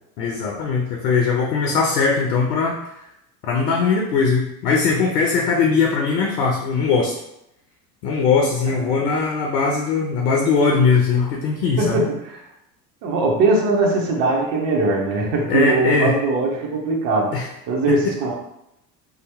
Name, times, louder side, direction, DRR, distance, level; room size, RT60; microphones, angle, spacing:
voice 1, 0.2-2.8 3.4-7.1 8.0-12.0 15.5-16.1 17.3-17.5 17.9-18.1, left 5 dB, 70° left, 0 dB, 0.7 m, -20 dB
voice 2, 8.7-9.0 11.8-12.4 13.0-17.3 17.7-18.4, right 3 dB, 45° right, -1 dB, 0.8 m, -21 dB
2.8 x 2.1 x 3.3 m, 0.82 s
figure-of-eight pair, 70°, 49 cm